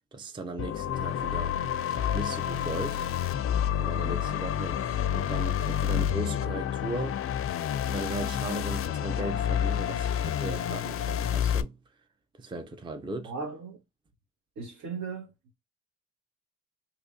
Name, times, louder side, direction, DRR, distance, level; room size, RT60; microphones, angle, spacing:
voice 1, 0.1-1.6 2.1-3.1 3.8-7.3 7.9-11.8 12.4-13.3, right 2 dB, 15° right, 0.5 m, -37 dB
sound 1, 0.6-11.6, left 10 dB, 50° left, 0.4 m, -29 dB
voice 2, 13.2-13.8 14.6-15.3, right 5 dB, 70° right, 1.0 m, -37 dB
2.8 x 2.6 x 3.5 m
cardioid pair, 90°, 30 cm